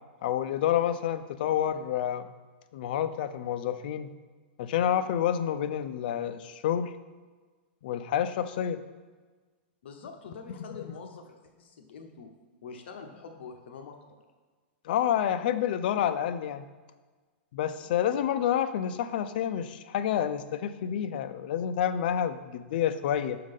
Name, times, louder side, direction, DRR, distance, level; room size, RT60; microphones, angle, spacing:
voice 1, 0.2-2.3 2.7-4.1 4.6-6.9 7.8-8.8 14.8-16.7 17.5-23.4, left 10 dB, 55° left, 11 dB, 0.4 m, -28 dB
voice 2, 9.8-12.3 12.6-14.0 17.7-17.9, left 5 dB, 75° left, 4 dB, 0.8 m, -45 dB
6.4 x 3.8 x 5.2 m, 1.4 s
supercardioid pair, 165°, 6 cm